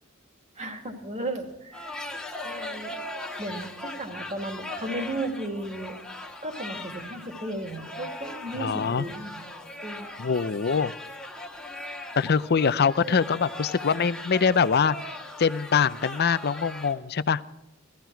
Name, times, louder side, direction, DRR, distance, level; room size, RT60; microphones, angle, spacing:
voice 1, 0.6-1.9 2.4-3.0 3.4-6.0 6.4-9.5 9.8-10.1 13.0-13.2, right 1 dB, 35° right, 4 dB, 2.2 m, -35 dB
sound 1, 1.7-16.9, left 1 dB, 5° left, 1.6 m, -39 dB
voice 2, 8.6-9.0 10.2-10.9 12.2-15.1 15.4-17.4, left 6 dB, 50° left, 14 dB, 0.6 m, -24 dB
17.0 x 14.0 x 4.6 m, 0.97 s
head